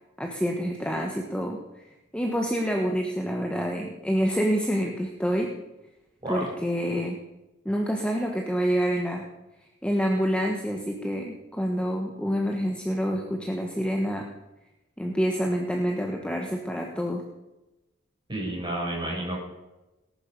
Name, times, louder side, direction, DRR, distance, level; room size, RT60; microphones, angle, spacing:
voice 1, 0.2-5.6 6.3-7.2 7.6-9.3 9.8-14.3 15.0-17.3, equal, 5° left, 1 dB, 1.3 m, -27 dB
voice 2, 18.3-19.4, right 1 dB, 25° right, -3 dB, 7.0 m, -30 dB
19.0 x 11.0 x 5.4 m, 0.99 s
head